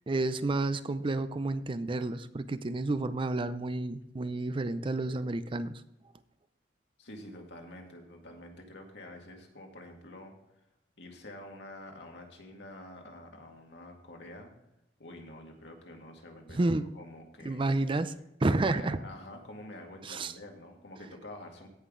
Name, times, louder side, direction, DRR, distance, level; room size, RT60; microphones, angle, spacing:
voice 1, 0.1-5.8 16.5-16.9 17.4-18.1 18.4-19.0 20.0-20.3, right 2 dB, 30° right, 13 dB, 0.5 m, -30 dB
voice 2, 7.0-10.3 11.0-14.5 15.0-18.0 18.5-21.7, left 1 dB, 75° left, 1 dB, 2.0 m, -47 dB
16.5 x 5.8 x 3.8 m, 0.83 s
head